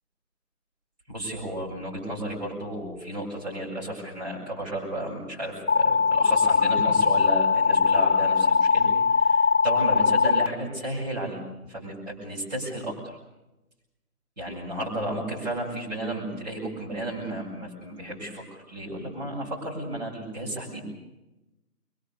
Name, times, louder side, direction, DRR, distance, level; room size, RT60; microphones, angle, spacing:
voice 1, 1.1-13.0 14.4-20.8, right 1 dB, 25° right, -3 dB, 7.3 m, -33 dB
sound 1, 5.7-10.5, left 5 dB, 55° left, 1.1 m, -21 dB
24.5 x 24.0 x 6.9 m, 0.97 s
figure-of-eight pair, 180°, 46 cm